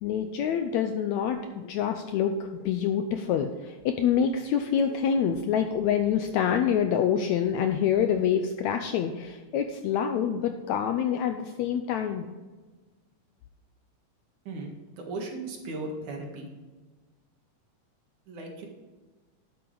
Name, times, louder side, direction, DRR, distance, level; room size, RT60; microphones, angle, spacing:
voice 1, 0.0-12.3, left 8 dB, 80° left, 6 dB, 1.7 m, -26 dB
voice 2, 15.0-16.5 18.3-18.6, right 2 dB, 65° right, 1 dB, 3.1 m, -36 dB
12.0 x 8.8 x 3.9 m, 1.3 s
omnidirectional pair, 3.8 m